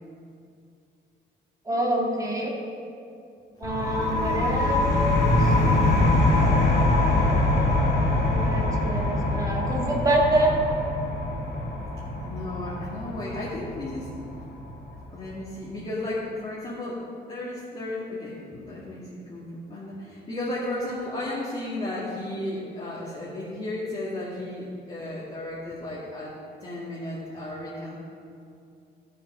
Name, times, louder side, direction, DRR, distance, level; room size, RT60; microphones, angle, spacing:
voice 1, 1.7-2.5 3.6-5.5 8.3-10.5, right 1 dB, 20° right, -2 dB, 2.1 m, -26 dB
sound 1, 3.6-15.0, left 2 dB, 60° left, 2.1 m, -24 dB
voice 2, 12.2-14.1 15.1-26.3 26.6-27.9, left 1 dB, 30° left, -8 dB, 2.4 m, -34 dB
13.5 x 7.5 x 5.1 m, 2.5 s
cardioid pair, 120°, 18 cm